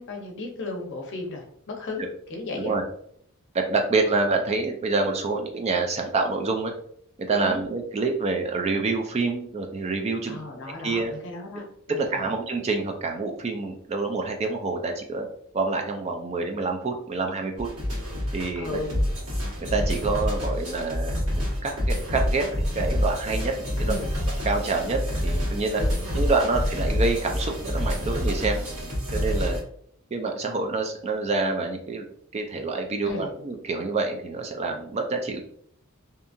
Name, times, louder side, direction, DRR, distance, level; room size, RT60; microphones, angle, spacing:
voice 1, 0.0-2.8 7.3-7.6 10.3-12.3 18.6-19.0 23.9-24.1 25.8-26.2 33.0-33.3, left 2 dB, 55° left, 2 dB, 0.6 m, -35 dB
voice 2, 2.5-2.8 3.5-6.7 7.3-10.4 10.8-11.1 11.9-15.3 15.5-17.7 18.3-18.8 19.6-21.1 21.6-23.9 24.4-25.8 26.1-28.6 29.1-29.6 30.1-32.0 32.3-35.4, right 3 dB, 30° right, 3 dB, 0.3 m, -27 dB
sound 1, 17.6-29.6, equal, 75° right, 1.4 m, -27 dB
2.7 x 2.4 x 2.5 m, 0.65 s
head